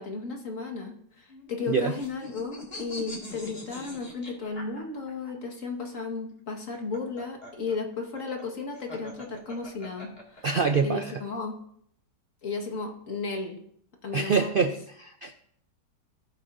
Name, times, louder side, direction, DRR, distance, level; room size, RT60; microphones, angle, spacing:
voice 1, 0.0-10.5 10.8-11.6 12.4-13.6 14.0-14.7, left 4 dB, 50° left, 2 dB, 2.0 m, -34 dB
sound 1, 1.3-5.3 6.6-10.8, left 1 dB, 35° left, 2.5 m, -43 dB
voice 2, 10.4-11.1 14.1-15.3, right 5 dB, 85° right, 6 dB, 0.4 m, -25 dB
18.5 x 7.5 x 2.7 m, 0.66 s
omnidirectional pair, 1.7 m